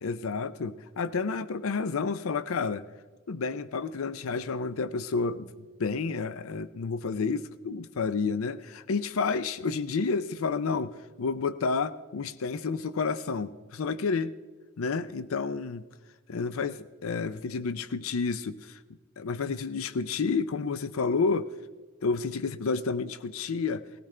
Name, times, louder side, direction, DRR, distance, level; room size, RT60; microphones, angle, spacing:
voice 1, 0.0-2.8 3.3-5.5 5.8-14.3 14.8-15.8 16.3-18.8 19.2-21.5 22.0-23.8, left 4 dB, 75° left, 15 dB, 0.5 m, -30 dB
19.0 x 15.5 x 3.3 m, 1.3 s
head